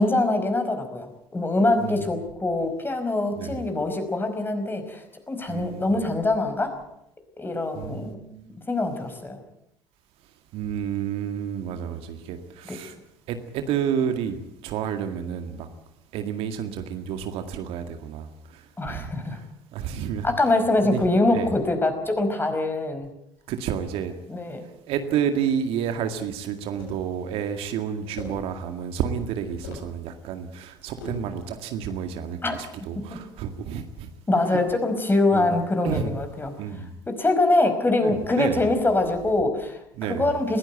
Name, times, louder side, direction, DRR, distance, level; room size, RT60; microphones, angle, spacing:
voice 1, 0.0-6.7 7.4-8.1 8.7-9.4 12.6-12.8 18.8-19.4 20.2-23.1 24.3-24.6 32.4-32.6 33.1-33.2 34.3-36.5 37.1-40.6, left 2 dB, 20° left, 7 dB, 5.1 m, -24 dB
voice 2, 5.5-5.9 7.8-8.4 10.5-12.9 13.3-14.4 14.6-15.7 16.1-18.3 18.9-19.1 19.7-20.3 20.9-21.0 21.3-21.5 23.5-24.1 24.9-34.1 34.5-34.6 35.3-35.5 35.8-36.1 36.6-36.9 38.0-38.7 40.0-40.3, right 8 dB, 60° right, 8 dB, 2.0 m, -30 dB
sound 1, 26.6-27.1 28.1-28.5 29.5-29.9 31.0-31.3, left 3 dB, 75° left, 7.1 m, -38 dB
21.0 x 15.5 x 9.2 m, 0.81 s
hypercardioid pair, 60°, 11 cm